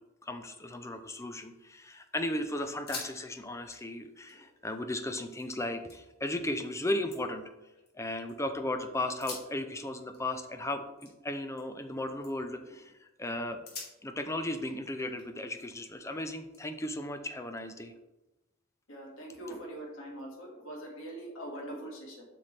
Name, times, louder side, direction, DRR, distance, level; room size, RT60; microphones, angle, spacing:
voice 1, 0.2-7.5 7.9-13.6 14.0-17.9, left 1 dB, 15° left, 8 dB, 0.5 m, -36 dB
sound 1, 1.1-1.9 2.2-2.3 2.7-3.2 3.4-5.5 5.9-6.4 6.8-8.3 9.1-11.9 12.2-12.6 13.1-13.2 13.6-15.9 16.5-17.7, left 4 dB, 50° left, 2.1 m, -49 dB
voice 2, 18.9-22.3, right 1 dB, 65° left, -2 dB, 2.1 m, -43 dB
7.9 x 5.8 x 3.3 m, 0.99 s
head